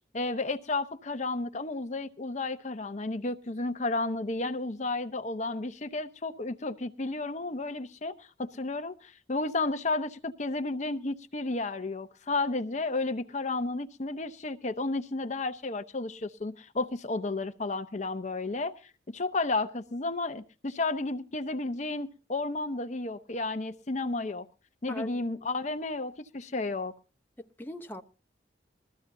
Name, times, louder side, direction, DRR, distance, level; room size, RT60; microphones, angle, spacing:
voice 1, 0.1-24.5 24.8-26.9, left 2 dB, 40° left, 0.8 m, -32 dB
voice 2, 24.9-25.2 27.4-28.0, left 1 dB, 10° left, 0.8 m, -40 dB
21.0 x 14.0 x 2.7 m
head